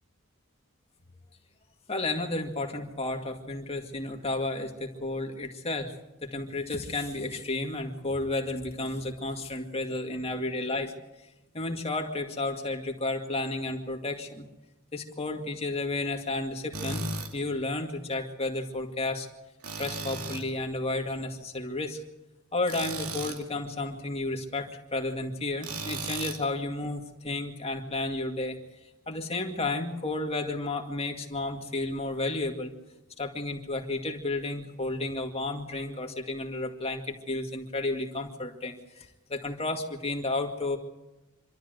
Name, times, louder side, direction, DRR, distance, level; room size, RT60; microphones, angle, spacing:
voice 1, 1.9-5.9 6.2-11.3 11.5-14.5 14.9-17.0 17.3-19.3 19.8-22.0 22.5-28.6 29.1-32.7 33.2-40.8, left 2 dB, 25° left, 3 dB, 2.2 m, -32 dB
Tools, 16.7-17.3 19.6-20.5 22.7-23.4 25.6-26.4, right 3 dB, 75° right, 2.5 m, -35 dB
26.0 x 13.0 x 8.0 m, 1.0 s
head